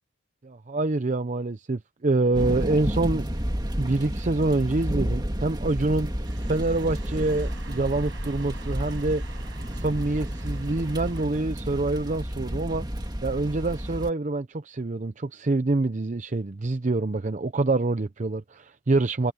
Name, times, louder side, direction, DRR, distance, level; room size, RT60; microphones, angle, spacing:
voice 1, 0.4-3.3 3.8-9.4 9.7-12.9 13.2-19.3, right 2 dB, 40° right, 0.6 m, -26 dB
sound 1, 2.3-14.1, equal, 20° right, 1.8 m, -31 dB
sound 2, 6.2-11.3, right 3 dB, 75° right, 5.5 m, -47 dB
head